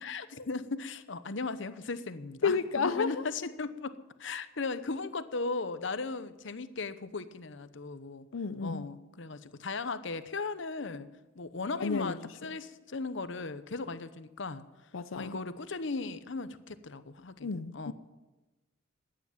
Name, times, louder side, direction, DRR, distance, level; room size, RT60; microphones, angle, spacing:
voice 1, 0.0-3.9 4.2-8.3 8.6-11.1 11.4-14.7 15.2-17.9, left 3 dB, 65° left, 13 dB, 0.9 m, -37 dB
voice 2, 2.4-3.2 8.3-8.9 11.8-12.2 14.9-15.4 17.4-17.9, left 5 dB, 90° left, 11 dB, 0.6 m, -31 dB
15.0 x 10.0 x 9.5 m, 1.1 s
head